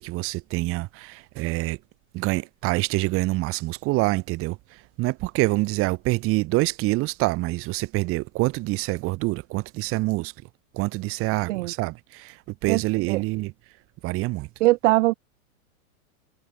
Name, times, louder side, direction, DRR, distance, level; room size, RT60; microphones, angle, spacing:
voice 1, 0.0-1.8 2.1-4.6 5.0-10.3 10.7-13.5 14.0-14.5, right 22 dB, 30° right, 1.0 m, -26 dB
voice 2, 14.6-15.1, right 20 dB, 60° right, 0.5 m, -20 dB
hypercardioid pair, 130°, 42 cm